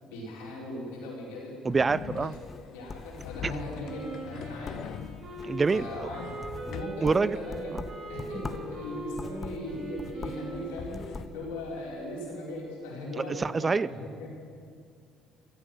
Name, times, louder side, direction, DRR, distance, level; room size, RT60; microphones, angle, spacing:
voice 1, 0.0-1.6 2.2-2.3 2.7-4.9 5.7-6.2 6.7-7.7 8.1-14.3, left 1 dB, 80° left, -4 dB, 4.8 m, -38 dB
voice 2, 1.6-2.3 3.4-3.7 5.4-6.1 7.0-7.4 7.7-7.8 13.2-13.9, right 4 dB, 30° right, 19 dB, 0.4 m, -26 dB
sound 1, 1.7-7.1 10.4-11.2, left 10 dB, 60° left, 0.4 m, -42 dB
sound 2, 2.3-3.7 4.1-4.4 4.6-5.7 6.1-8.8 9.1-10.5 10.8-11.4, left 3 dB, 30° left, 1.2 m, -42 dB
Wind instrument woodwind instrument, 3.8-10.9, right 2 dB, 55° right, 3.9 m, -41 dB
16.0 x 13.0 x 6.2 m, 2.2 s
hypercardioid pair, 55°, 0 cm